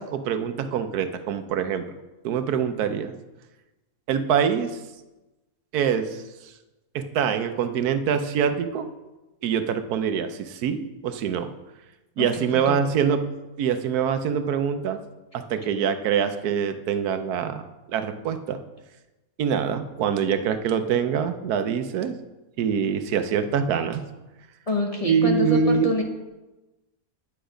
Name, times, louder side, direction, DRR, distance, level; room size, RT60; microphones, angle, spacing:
voice 1, 0.0-1.8 2.2-3.1 4.1-4.8 5.7-6.2 6.9-8.9 9.4-11.5 12.2-13.2 13.6-15.0 15.3-18.6 19.4-22.2 22.6-24.0 25.0-25.9, right 7 dB, 85° right, 9 dB, 1.2 m, -24 dB
voice 2, 12.2-12.8 24.7-26.0, left 1 dB, 30° left, 1 dB, 0.9 m, -27 dB
10.0 x 6.9 x 5.0 m, 1.1 s
omnidirectional pair, 1.6 m